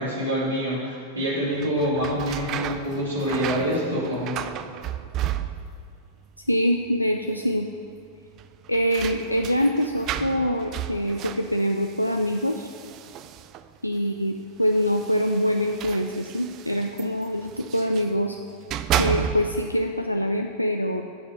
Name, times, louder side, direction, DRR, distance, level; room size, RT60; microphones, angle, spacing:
voice 1, 0.0-4.4, equal, 80° right, -11 dB, 2.4 m, -26 dB
sound 1, 1.5-5.9 6.2-6.9 7.2-7.3 8.3-13.8 14.6-18.1 18.5-19.7, right 10 dB, 35° right, 0.4 m, -33 dB
voice 2, 6.5-7.7 8.7-12.7 13.8-18.4 18.9-21.0, equal, 90° left, 4 dB, 0.4 m, -24 dB
9.3 x 5.8 x 6.4 m, 2.5 s
figure-of-eight pair, 90°, 0 cm